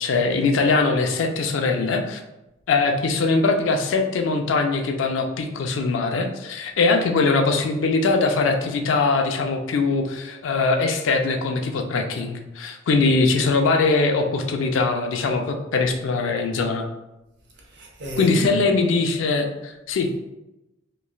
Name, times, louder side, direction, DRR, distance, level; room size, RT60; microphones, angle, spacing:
voice 1, 0.0-2.2 2.7-16.9 18.2-20.2, left 3 dB, 80° left, 0.4 m, -21 dB
voice 2, 17.6-18.7 19.9-20.2, equal, 65° right, 0.7 m, -34 dB
3.1 x 2.3 x 2.3 m
head